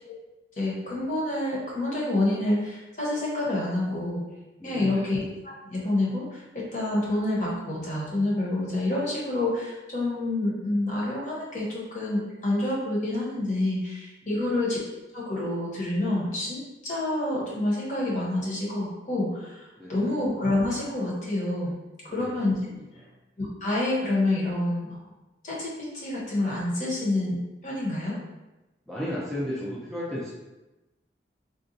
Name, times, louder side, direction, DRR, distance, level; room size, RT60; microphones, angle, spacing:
voice 1, 0.6-4.2 4.6-5.2 5.7-14.8 15.1-21.7 22.0-22.5 23.4-25.0 25.4-28.2, left 2 dB, 45° left, -5 dB, 1.0 m, -28 dB
voice 2, 4.6-5.1 14.3-14.6 19.8-19.9 22.2-22.3 22.7-23.1 28.9-30.3, equal, ahead, -9 dB, 0.5 m, -34 dB
3.9 x 2.3 x 2.6 m, 1.0 s
head